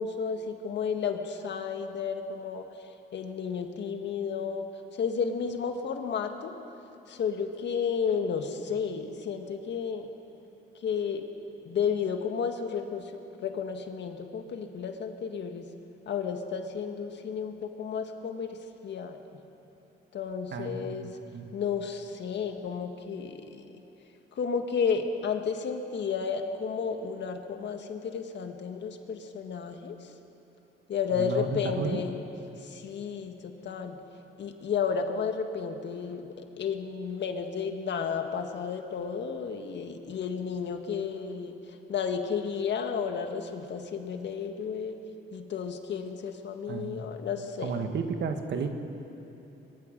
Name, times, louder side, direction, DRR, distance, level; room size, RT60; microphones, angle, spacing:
voice 1, 0.0-4.7 4.9-6.5 7.1-10.1 10.8-11.2 11.7-13.1 13.4-15.7 16.1-19.2 20.1-21.2 21.5-23.8 24.3-30.1 30.9-32.2 32.6-34.0 34.4-45.0 45.3-47.9, left 6 dB, 65° left, 5 dB, 1.7 m, -32 dB
voice 2, 20.5-21.5 31.1-32.0 46.7-47.0 47.6-48.7, right 5 dB, 60° right, 6 dB, 1.8 m, -33 dB
23.0 x 22.0 x 5.3 m, 2.9 s
cardioid pair, 90°, 20 cm